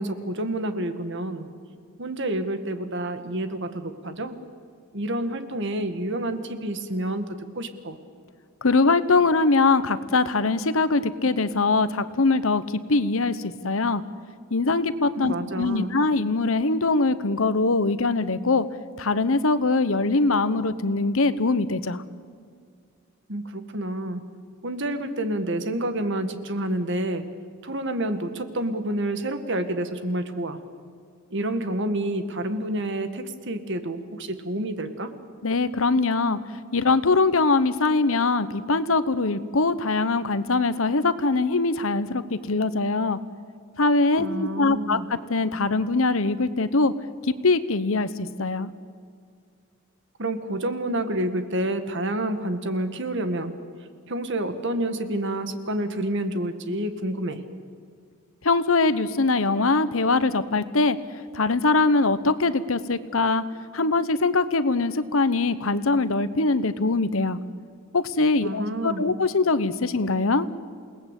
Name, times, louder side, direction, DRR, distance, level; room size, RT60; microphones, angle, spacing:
voice 1, 0.0-1.5 2.0-4.4 4.9-8.0 15.2-15.9 23.3-24.2 24.6-27.3 27.6-30.6 31.3-35.1 44.2-45.1 50.2-53.5 54.1-57.4 68.4-69.1, right 1 dB, 60° right, 8 dB, 1.8 m, -28 dB
voice 2, 8.6-14.0 14.5-18.7 19.0-22.0 35.4-36.4 36.7-43.2 43.8-45.0 45.3-46.9 47.2-48.7 58.4-61.0 61.3-63.4 63.7-67.4 67.9-70.5, left 3 dB, 75° left, 14 dB, 1.1 m, -22 dB
28.5 x 19.0 x 8.4 m, 2.2 s
head